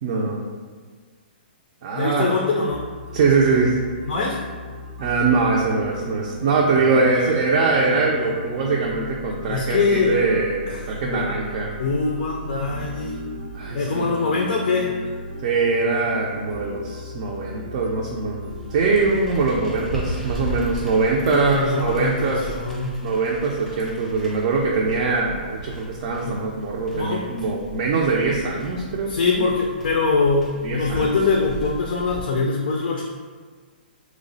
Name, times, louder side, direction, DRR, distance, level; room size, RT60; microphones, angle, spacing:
voice 1, 0.0-0.4 1.8-2.3 3.1-3.8 5.0-11.7 13.5-14.0 15.4-22.5 23.0-29.4 30.6-31.2, right 3 dB, 40° right, -2 dB, 0.4 m, -22 dB
voice 2, 1.9-2.8 4.1-4.4 9.5-10.2 11.0-11.3 11.8-13.2 13.7-15.0 21.2-23.0 26.2-26.4 26.9-27.5 29.1-33.0, left 4 dB, 65° left, 0 dB, 0.4 m, -23 dB
sound 1, 2.7-20.9, right 1 dB, 80° right, 0.6 m, -37 dB
sound 2, 18.5-32.2, right 1 dB, ahead, 0.7 m, -37 dB
3.0 x 2.0 x 3.8 m, 1.5 s
hypercardioid pair, 155°, 5 cm